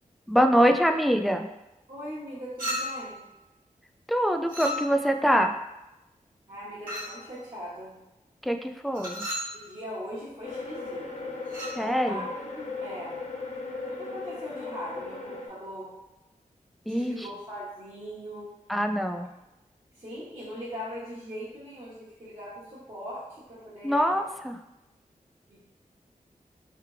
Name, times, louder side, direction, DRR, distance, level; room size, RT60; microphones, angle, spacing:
voice 1, 0.3-1.5 4.1-5.6 8.4-9.3 11.8-12.3 16.9-17.3 18.7-19.3 23.8-24.6, equal, ahead, 5 dB, 0.4 m, -24 dB
voice 2, 1.9-3.2 6.5-8.0 9.5-11.3 12.1-13.2 13.9-15.9 16.9-18.5 19.9-24.3 25.5-25.6, equal, 40° right, -11 dB, 1.3 m, -40 dB
Chink clink, 2.6-3.2 4.5-5.2 6.9-7.2 8.9-9.6 11.5-11.8, equal, 70° right, 1.5 m, -34 dB
sound 1, 10.4-15.5, left 3 dB, 50° left, 0.8 m, -37 dB
3.3 x 3.3 x 3.3 m, 0.96 s
cardioid pair, 50°, 15 cm